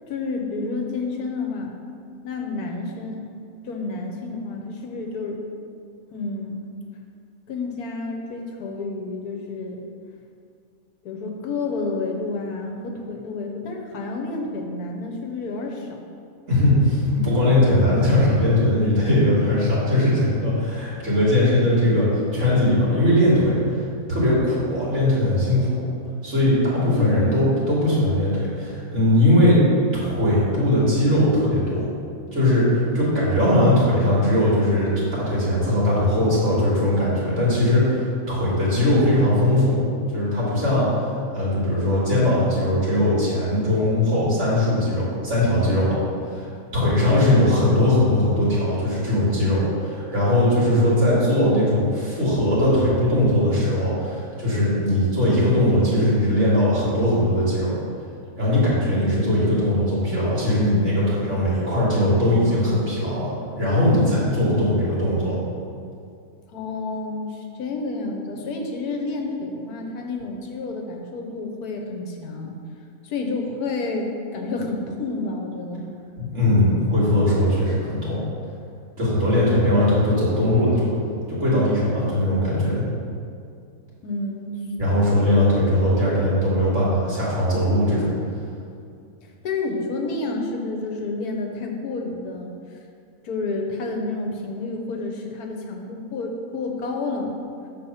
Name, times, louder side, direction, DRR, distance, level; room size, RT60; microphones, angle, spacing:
voice 1, 0.1-1.8 2.2-3.3 3.6-5.4 6.1-6.6 7.5-9.8 11.0-16.0 27.0-27.6 66.5-72.5 73.0-75.9 79.4-79.9 84.0-84.6 85.2-85.5 89.2-92.5 93.2-97.4, left 3 dB, 80° left, 2 dB, 1.3 m, -30 dB
voice 2, 16.5-23.8 24.1-25.8 26.2-29.6 29.9-31.8 32.3-39.8 40.1-41.0 41.3-46.0 46.3-57.7 58.4-65.4 76.2-78.2 79.0-80.9 81.3-82.8 84.8-88.1, left 1 dB, 50° right, -8 dB, 2.4 m, -20 dB
7.2 x 4.2 x 5.6 m, 2.3 s
omnidirectional pair, 1.6 m